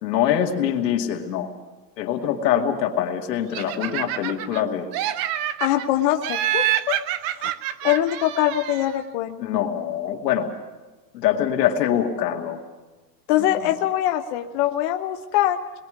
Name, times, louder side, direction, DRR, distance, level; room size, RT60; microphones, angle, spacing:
voice 1, 0.0-1.5 2.0-4.9 9.4-10.5 11.1-12.6, left 10 dB, 85° left, 4 dB, 2.7 m, -24 dB
Laughter, 3.5-4.6 4.9-5.9 6.2-9.0, right 12 dB, 35° right, 0.7 m, -27 dB
voice 2, 5.6-7.0 7.3-7.5 7.8-9.4 13.3-15.6, left 13 dB, 45° left, 6 dB, 0.9 m, -23 dB
28.5 x 21.0 x 5.2 m, 1.2 s
supercardioid pair, 155°, 49 cm